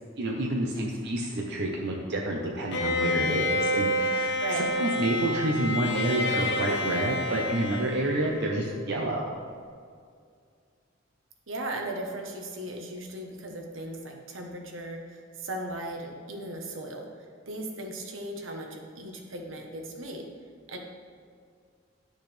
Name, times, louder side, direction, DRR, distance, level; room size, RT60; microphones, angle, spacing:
voice 1, 0.2-9.3, right 1 dB, 60° right, -1 dB, 0.8 m, -29 dB
Bowed string instrument, 2.7-8.8, left 1 dB, 65° left, 0.9 m, -29 dB
voice 2, 11.5-17.1 17.5-20.2 20.7-20.8, right 1 dB, 80° right, 2 dB, 1.1 m, -37 dB
10.5 x 6.5 x 3.3 m, 2.2 s
head